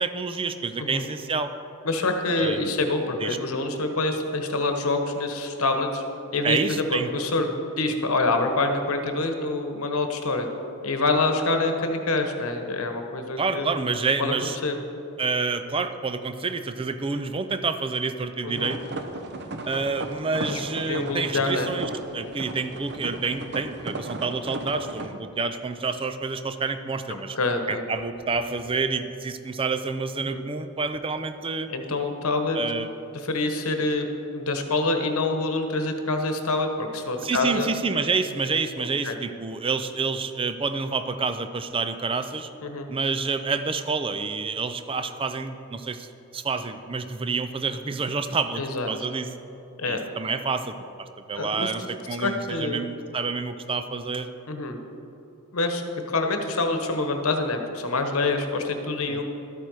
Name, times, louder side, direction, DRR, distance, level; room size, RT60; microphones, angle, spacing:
voice 1, 0.0-1.5 2.3-2.8 3.2-3.4 6.4-7.1 13.4-14.6 15.2-18.8 19.7-27.4 27.7-31.7 32.5-32.9 37.2-42.5 42.9-46.1 46.3-49.3 49.8-54.3 59.1-59.2, right 4 dB, 25° right, 9 dB, 0.5 m, -28 dB
voice 2, 1.8-6.0 6.3-7.5 7.8-10.5 10.8-13.7 14.2-14.3 14.6-14.8 18.4-18.7 20.5-21.7 27.3-27.8 30.2-30.4 31.7-32.6 33.1-34.1 34.3-37.7 39.0-39.1 42.6-42.9 48.6-48.9 49.8-50.0 51.4-51.7 52.2-52.8 54.5-54.8 55.5-59.2, left 2 dB, 70° left, 5 dB, 1.1 m, -26 dB
sound 1, 18.5-25.1, right 2 dB, 50° right, 0.8 m, -35 dB
13.0 x 8.7 x 4.7 m, 2.9 s
head